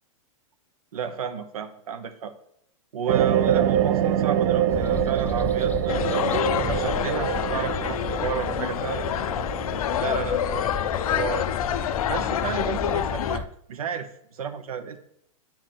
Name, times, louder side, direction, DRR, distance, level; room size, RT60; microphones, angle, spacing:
voice 1, 0.9-2.3 2.9-9.1 10.0-10.7 11.1-11.5 12.1-15.0, right 7 dB, 85° right, 8 dB, 1.1 m, -32 dB
sound 1, 3.1-11.8 12.4-12.5, right 10 dB, 55° right, 0.6 m, -26 dB
sound 2, 4.7-13.5, left 5 dB, 10° left, 0.4 m, -34 dB
sound 3, 5.9-13.4, left 10 dB, 80° left, 0.6 m, -27 dB
10.5 x 4.6 x 5.8 m, 0.72 s
hypercardioid pair, 150°, 18 cm